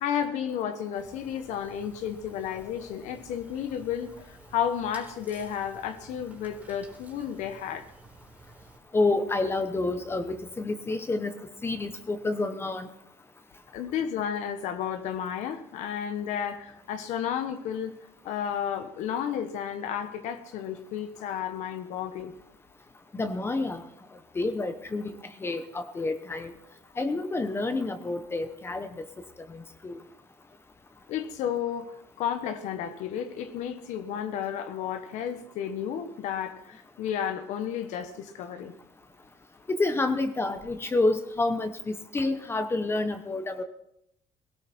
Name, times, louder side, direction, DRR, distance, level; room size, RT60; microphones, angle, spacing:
voice 1, 0.0-7.8 13.7-17.9 18.2-22.3 31.1-38.7, left 9 dB, 75° left, 9 dB, 1.3 m, -32 dB
sound 1, 0.9-8.8, right 3 dB, 10° right, 3.4 m, -52 dB
voice 2, 8.9-11.3 11.6-12.9 23.1-23.8 24.3-26.5 27.0-28.9 29.5-30.0 39.7-43.6, left 2 dB, 20° left, 9 dB, 0.9 m, -29 dB
17.5 x 16.5 x 4.4 m, 0.79 s
cardioid pair, 135°, 12 cm